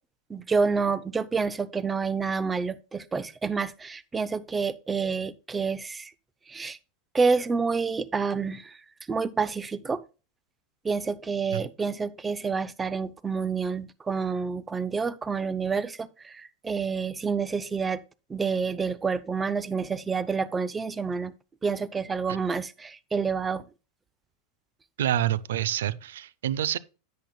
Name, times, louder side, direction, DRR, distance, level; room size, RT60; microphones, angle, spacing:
voice 1, 0.3-6.1 6.5-6.8 7.1-8.8 9.1-10.0 10.8-18.0 18.3-21.3 21.6-23.6, right 5 dB, 20° right, 0.7 m, -28 dB
voice 2, 25.0-26.8, right 11 dB, 80° right, 0.5 m, -27 dB
10.5 x 8.5 x 2.2 m
hypercardioid pair, 105°, 0 cm